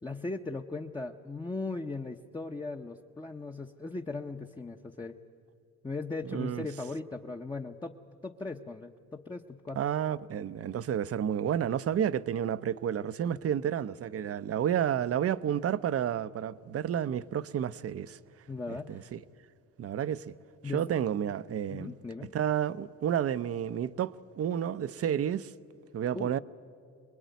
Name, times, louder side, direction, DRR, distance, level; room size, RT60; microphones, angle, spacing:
voice 1, 0.0-5.2 5.8-7.9 8.2-9.8 18.5-19.1 20.6-20.9 21.7-22.3 26.1-26.4, left 3 dB, 15° left, 0.8 m, -38 dB
voice 2, 6.2-6.7 9.7-18.2 18.7-19.2 19.8-20.3 20.6-21.9 22.3-25.5 25.9-26.4, right 9 dB, 50° right, 0.7 m, -31 dB
24.5 x 21.0 x 9.3 m
cardioid pair, 90°, 30 cm